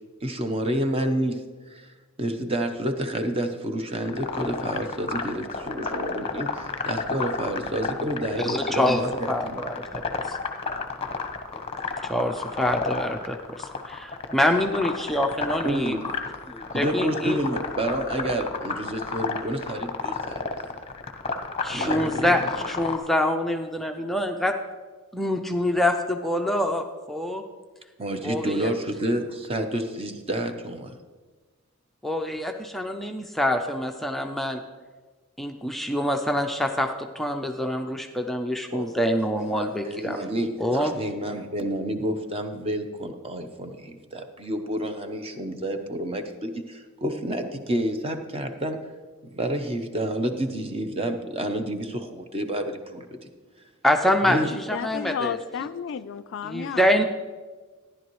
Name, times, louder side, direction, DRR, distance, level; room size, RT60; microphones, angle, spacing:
voice 1, 0.2-1.9 2.2-9.6 15.6-16.0 16.7-20.7 21.7-22.2 28.0-30.9 38.7-48.8 49.3-53.1 54.2-54.5, right 1 dB, 30° right, 6 dB, 0.8 m, -29 dB
sound 1, 4.0-23.0, left 4 dB, 30° left, 0.8 m, -31 dB
voice 2, 8.4-9.0 9.3-10.4 12.0-16.0 16.5-17.4 21.6-24.5 25.1-27.4 28.2-28.7 32.0-34.6 35.4-40.2 40.6-40.9 53.8-55.4 56.4-57.0, left 1 dB, ahead, 3 dB, 0.4 m, -26 dB
voice 3, 54.5-57.0, left 7 dB, 65° left, 15 dB, 0.4 m, -32 dB
13.0 x 10.5 x 3.1 m, 1.4 s
head